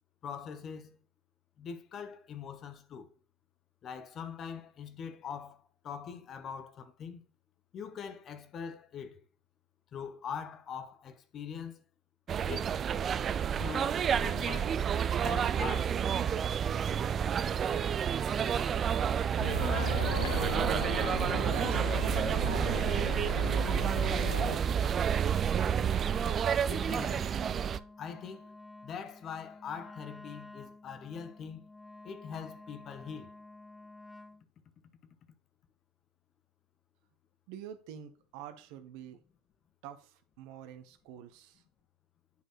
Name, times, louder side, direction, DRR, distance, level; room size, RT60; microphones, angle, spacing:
voice 1, 0.2-1.0 1.6-3.1 3.8-7.2 7.7-9.2 9.9-11.8 12.4-12.8 13.6-14.8 15.2-16.1 26.7-27.4 28.0-28.4 28.8-31.7 32.0-33.3, left 7 dB, 45° left, 0.9 m, -42 dB
sound 1, 12.3-27.8, right 8 dB, 40° right, 0.4 m, -29 dB
sound 2, 19.4-24.6, left 9 dB, 80° left, 0.6 m, -38 dB
voice 2, 21.1-22.8 23.3-25.0 37.5-39.2 39.8-41.6, right 9 dB, 65° right, 0.9 m, -47 dB
Wind instrument woodwind instrument, 23.4-34.4, left 2 dB, 15° left, 0.6 m, -51 dB
8.4 x 4.5 x 3.0 m
hypercardioid pair, 70°, 0 cm